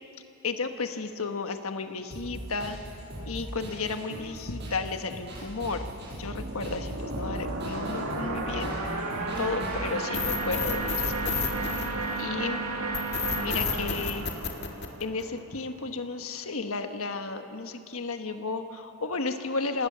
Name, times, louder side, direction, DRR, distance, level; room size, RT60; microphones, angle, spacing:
voice 1, 0.4-2.8 3.3-5.8 6.2-8.7 9.4-12.6 13.3-14.3 15.0-19.9, left 3 dB, 85° left, 7 dB, 1.3 m, -33 dB
sound 1, 2.1-10.1, equal, 50° right, 7.0 m, -41 dB
sound 2, 5.8-15.4, right 2 dB, 85° right, 2.5 m, -33 dB
sound 3, 10.1-12.4 12.9-15.4, left 6 dB, 50° left, 2.0 m, -30 dB
26.5 x 18.5 x 6.9 m, 2.6 s
head